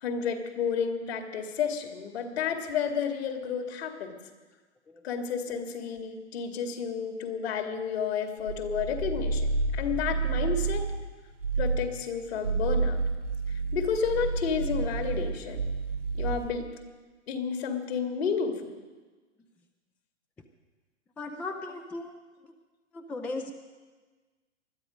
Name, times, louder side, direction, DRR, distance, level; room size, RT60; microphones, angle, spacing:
voice 1, 0.0-4.2 5.0-10.9 11.6-13.0 13.5-15.6 16.1-16.6 17.3-18.7, left 6 dB, 55° left, 4 dB, 2.5 m, -31 dB
sound 1, 8.4-11.0 11.4-11.9 12.3-16.6, right 4 dB, 85° right, 2.9 m, -30 dB
voice 2, 21.2-22.2 22.9-23.5, left 2 dB, 5° left, 5 dB, 0.4 m, -36 dB
20.5 x 13.0 x 5.2 m, 1.3 s
figure-of-eight pair, 115°, 37 cm